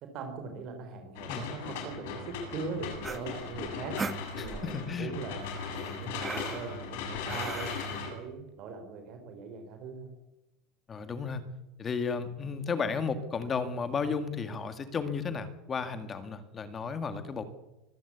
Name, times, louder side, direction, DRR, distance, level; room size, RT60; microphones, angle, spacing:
voice 1, 0.0-5.4 5.7-10.1, right 4 dB, 40° right, 5 dB, 3.6 m, -41 dB
sound 1, 1.2-8.1, left 6 dB, 70° left, 7.2 m, -38 dB
sound 2, 2.9-4.8 5.4-8.1, right 4 dB, 15° right, 1.1 m, -40 dB
voice 2, 4.4-5.1 10.9-11.4 11.8-17.4, left 5 dB, 20° left, 10 dB, 2.0 m, -33 dB
24.0 x 15.0 x 8.5 m, 0.96 s
supercardioid pair, 160°, 0 cm